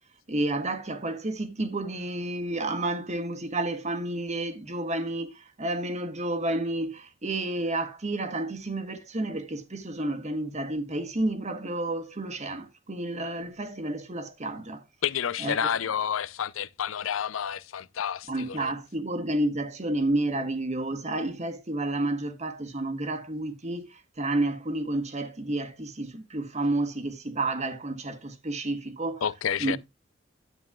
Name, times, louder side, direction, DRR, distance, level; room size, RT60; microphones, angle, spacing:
voice 1, 0.3-14.8 15.4-15.6 18.3-29.2 29.6-29.8, right 2 dB, 35° right, 1.3 m, -30 dB
voice 2, 15.0-18.7 29.2-29.8, left 8 dB, 90° left, 0.5 m, -30 dB
11.0 x 9.0 x 2.3 m
head